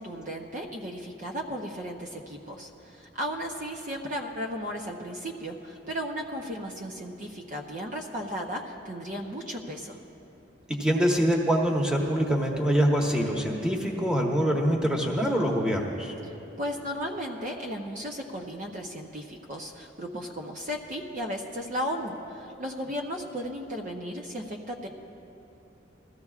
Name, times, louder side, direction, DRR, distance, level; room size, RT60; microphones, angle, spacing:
voice 1, 0.0-10.0 16.6-24.9, equal, 45° right, 1 dB, 0.7 m, -35 dB
voice 2, 10.7-16.1, equal, 5° right, -1 dB, 1.1 m, -25 dB
21.0 x 14.5 x 2.4 m, 2.9 s
head